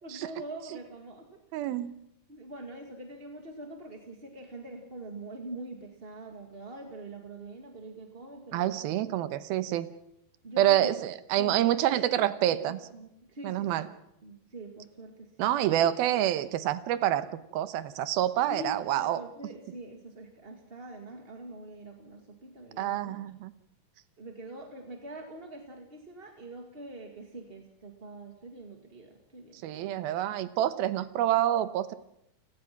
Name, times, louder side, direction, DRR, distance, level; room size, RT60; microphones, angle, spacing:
voice 1, 0.0-1.7 2.3-8.8 10.4-11.0 11.4-12.3 12.6-13.9 14.2-15.6 18.5-23.2 24.2-29.9, right 1 dB, 25° right, 3 dB, 1.3 m, -44 dB
voice 2, 1.5-1.9 8.5-9.9 10.6-12.8 13.4-13.9 15.4-17.3 17.5-19.2 22.8-23.5 29.5-32.0, right 12 dB, 80° right, 13 dB, 2.8 m, -27 dB
30.0 x 18.0 x 6.0 m, 0.79 s
omnidirectional pair, 4.4 m